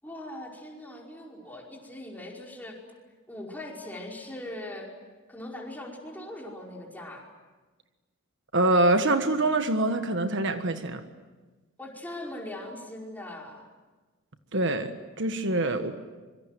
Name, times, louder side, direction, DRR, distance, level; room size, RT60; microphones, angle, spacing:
voice 1, 0.0-2.8 3.3-4.9 5.3-7.3 11.8-13.7 15.5-15.8, left 1 dB, 10° left, -1 dB, 5.2 m, -40 dB
voice 2, 8.5-11.0 14.5-15.9, right 2 dB, 60° right, 8 dB, 1.5 m, -25 dB
26.0 x 24.5 x 9.3 m, 1.3 s
head